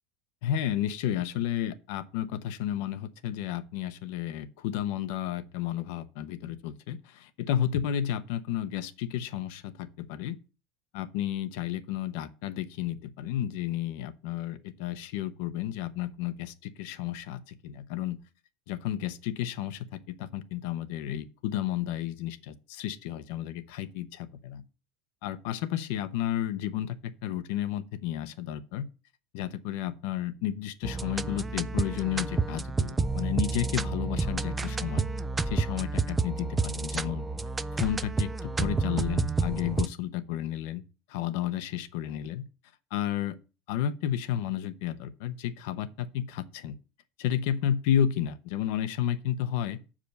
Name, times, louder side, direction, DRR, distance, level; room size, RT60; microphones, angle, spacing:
voice 1, 0.4-10.4 10.9-18.2 18.7-24.6 25.2-28.9 29.3-35.1 35.5-37.2 37.7-40.8 41.1-42.4 42.9-43.4 43.7-46.8 47.2-49.8, left 11 dB, 70° left, 0.8 m, -32 dB
sound 1, 30.8-39.9, right 4 dB, 10° right, 0.3 m, -30 dB
6.9 x 5.0 x 6.3 m
cardioid pair, 155°, 0 cm